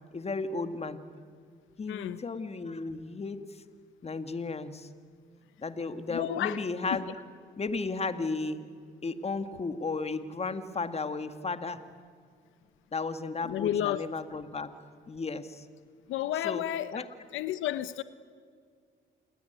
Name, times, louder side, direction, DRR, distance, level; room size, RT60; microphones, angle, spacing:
voice 1, 0.1-1.0 1.8-3.6 4.0-4.9 5.6-7.1 7.6-8.7 9.0-11.8 12.9-14.7 15.1-15.7 16.3-16.6 16.9-17.1, left 3 dB, 30° left, 10 dB, 2.1 m, -34 dB
voice 2, 1.9-2.2 6.1-6.6 13.4-14.0 16.1-17.0 17.3-18.0, left 12 dB, 85° left, 14 dB, 0.9 m, -31 dB
28.0 x 20.5 x 9.5 m, 2.1 s
cardioid pair, 90°, 20 cm